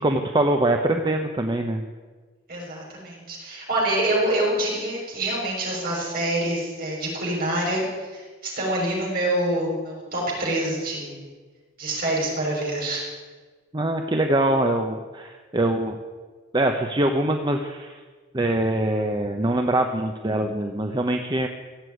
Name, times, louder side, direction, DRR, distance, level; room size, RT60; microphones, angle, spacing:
voice 1, 0.0-1.8 13.7-16.0 16.5-18.0 18.3-21.5, right 1 dB, 25° right, 4 dB, 0.9 m, -23 dB
voice 2, 2.5-11.2 11.8-13.1, right 1 dB, 50° right, -3 dB, 6.4 m, -26 dB
16.0 x 8.3 x 9.4 m, 1.4 s
head